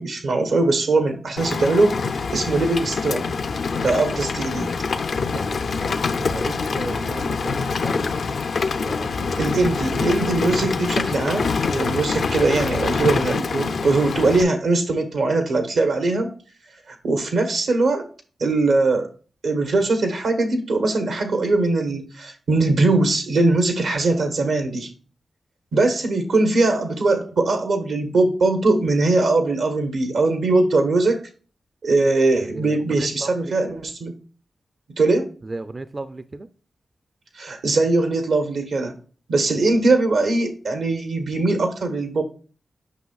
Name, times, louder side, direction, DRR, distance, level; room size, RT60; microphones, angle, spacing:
voice 1, 0.0-3.3 3.8-4.7 9.4-16.3 16.9-18.0 18.4-19.1 19.4-24.9 25.7-31.2 31.8-34.1 35.0-35.3 37.4-39.0 39.3-42.2, right 2 dB, 80° right, 1.1 m, -21 dB
Rain, 1.4-14.4, left 4 dB, 75° left, 0.4 m, -25 dB
voice 2, 5.3-8.2 8.8-9.4 32.5-32.7 33.0-33.3 35.5-36.5, right 2 dB, 35° right, 0.4 m, -35 dB
8.2 x 5.7 x 2.3 m
cardioid pair, 55°, 0 cm